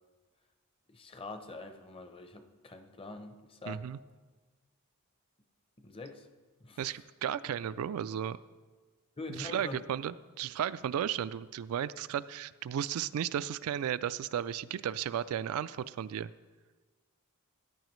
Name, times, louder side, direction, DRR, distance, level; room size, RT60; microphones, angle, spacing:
voice 1, 0.9-3.8 5.8-6.3 6.6-7.0 9.2-9.8, left 2 dB, 25° left, 7 dB, 0.6 m, -44 dB
voice 2, 3.7-4.0 6.8-8.4 9.4-16.3, right 9 dB, 70° right, 15 dB, 0.3 m, -34 dB
14.0 x 10.0 x 3.1 m, 1.4 s
head